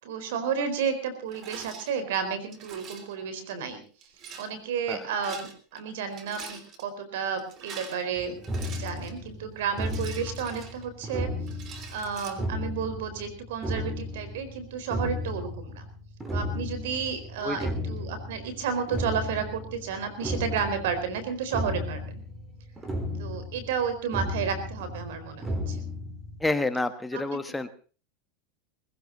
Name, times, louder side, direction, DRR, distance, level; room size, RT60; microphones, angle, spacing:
voice 1, 0.0-3.8 4.4-8.4 8.6-11.3 11.9-15.8 16.3-22.2 23.2-25.8 27.1-27.4, right 6 dB, 75° right, 10 dB, 4.4 m, -32 dB
Rattle, 1.3-1.9 2.5-3.2 4.0-4.5 5.1-5.8 6.1-6.8 7.4-9.2 9.8-11.1 11.5-12.3, right 6 dB, 40° right, 3.2 m, -44 dB
sound 1, 8.2-26.4, left 1 dB, 20° right, 4.1 m, -35 dB
voice 2, 17.4-17.7 26.4-27.7, left 2 dB, 10° left, 9 dB, 1.3 m, -29 dB
20.5 x 15.5 x 4.0 m, 0.38 s
supercardioid pair, 115°, 0 cm